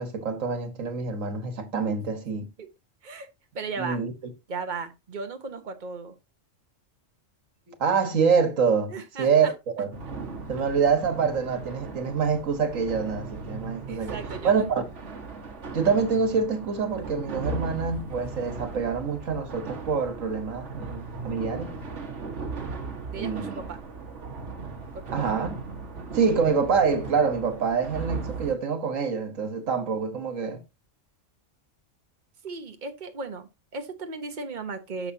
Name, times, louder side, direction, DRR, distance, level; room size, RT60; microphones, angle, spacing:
voice 1, 0.0-2.5 3.8-4.1 7.7-9.5 9.8-9.9 10.5-14.2 14.4-14.8 15.7-21.7 23.2-23.6 25.1-25.6 26.1-30.6, right 5 dB, 85° right, 1.9 m, -26 dB
voice 2, 2.3-2.7 3.0-3.3 3.5-4.0 4.5-6.2 8.9-9.5 13.9-14.7 23.1-23.8 24.9-25.2 32.4-35.1, right 4 dB, 40° right, 1.3 m, -36 dB
sound 1, 9.9-28.5, right 4 dB, 65° right, 1.8 m, -37 dB
10.5 x 6.8 x 2.8 m
omnidirectional pair, 1.3 m